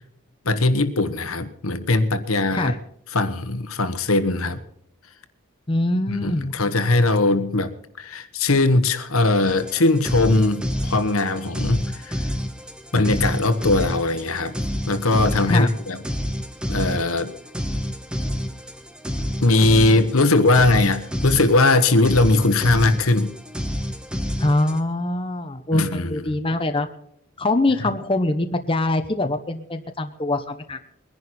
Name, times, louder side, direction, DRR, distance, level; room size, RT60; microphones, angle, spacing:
voice 1, 0.4-2.7 3.1-4.6 6.2-12.2 12.9-14.5 14.9-16.0 16.7-17.3 19.4-23.3 25.7-26.2, left 2 dB, 70° left, 1.3 m, -20 dB
voice 2, 5.7-6.5 15.5-15.8 24.4-26.9 27.4-30.8, left 2 dB, 25° left, 0.9 m, -23 dB
sound 1, 9.4-24.8, equal, 5° right, 1.3 m, -29 dB
22.0 x 11.0 x 4.3 m
head